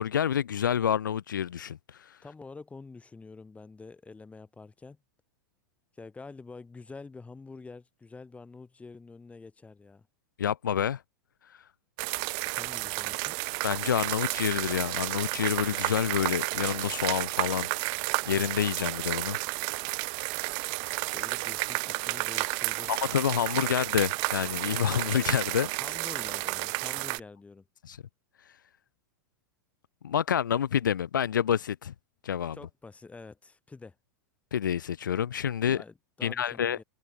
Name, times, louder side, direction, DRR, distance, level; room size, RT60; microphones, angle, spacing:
voice 1, 0.0-2.2 10.4-11.0 13.6-17.7 18.2-19.4 22.9-25.7 27.9-28.0 30.0-31.9 32.2-32.6 34.5-35.8 36.2-36.8, left 9 dB, 75° left, 1.4 m, -28 dB
voice 2, 2.2-5.0 5.9-10.1 12.5-13.4 21.1-23.0 25.8-27.6 32.5-34.0 35.7-36.8, left 4 dB, 10° left, 7.4 m, -47 dB
sound 1, 12.0-27.2, right 40 dB or more, 45° right, 0.3 m, -32 dB
hypercardioid pair, 100°, 10 cm